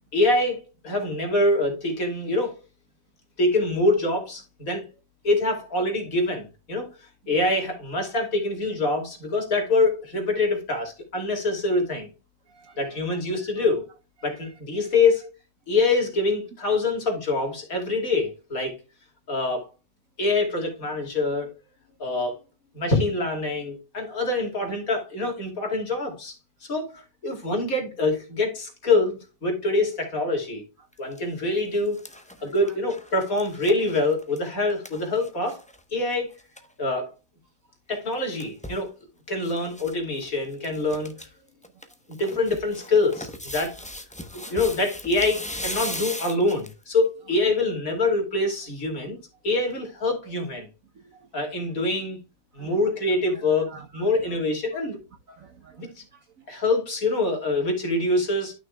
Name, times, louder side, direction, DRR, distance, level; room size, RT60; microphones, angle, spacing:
voice 1, 0.1-2.6 3.4-4.9 5.2-6.9 7.3-12.1 12.8-13.8 14.2-15.3 15.7-18.8 19.3-19.7 20.2-21.5 22.0-22.4 22.7-26.3 26.6-30.6 31.0-32.0 32.4-35.6 35.9-36.3 36.8-37.1 37.9-38.9 39.3-41.3 42.2-43.7 44.5-49.2 49.4-50.7 51.3-52.2 52.5-55.0 55.8-56.0 56.5-58.5, left 2 dB, 50° left, 2.9 m, -25 dB
voice 2, 12.5-13.6 14.2-14.5 30.8-30.9 32.4-32.7 44.2-44.6 45.8-45.9 50.9-51.5 52.5-52.9 53.3-54.4 55.3-56.5, right 4 dB, 60° right, 1.1 m, -50 dB
sound 1, 30.9-31.2 31.6-35.8 36.1-36.2 36.4-36.7 37.9-38.8 39.4-39.9 40.2-40.3 40.6-41.3 41.6-46.8 47.4-47.5, left 1 dB, 10° left, 0.3 m, -38 dB
12.0 x 6.2 x 2.3 m
omnidirectional pair, 1.9 m